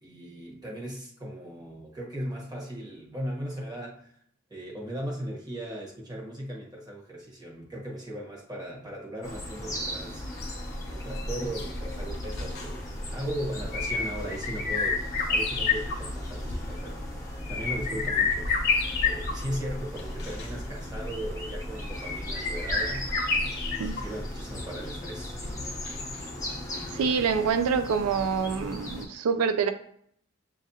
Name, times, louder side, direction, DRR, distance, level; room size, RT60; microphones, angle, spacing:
voice 1, 0.0-4.1 4.5-18.5 18.8-25.4, right 1 dB, 20° right, -3 dB, 1.1 m, -38 dB
sound 1, 9.2-29.1, left 1 dB, 15° left, 0.8 m, -38 dB
sound 2, 10.3-26.2 26.5-26.6, left 4 dB, 50° left, 0.9 m, -31 dB
voice 2, 26.9-29.7, right 6 dB, 85° right, 8 dB, 0.4 m, -26 dB
7.3 x 2.5 x 2.7 m, 0.65 s
head